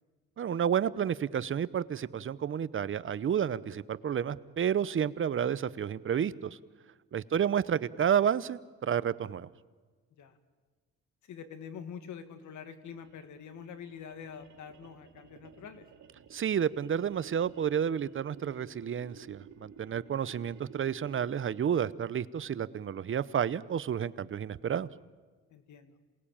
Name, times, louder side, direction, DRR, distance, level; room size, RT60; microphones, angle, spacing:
voice 1, 0.4-6.6 7.1-9.5 16.3-24.9, right 8 dB, 40° right, 16 dB, 0.8 m, -30 dB
voice 2, 7.1-7.5 10.2-10.4 11.3-15.9 25.5-26.0, left 7 dB, 75° left, 9 dB, 2.1 m, -46 dB
sound 1, 12.8-21.5, right 6 dB, 70° right, 2.7 m, -54 dB
27.5 x 19.0 x 8.8 m, 1.4 s
cardioid pair, 90°, 30 cm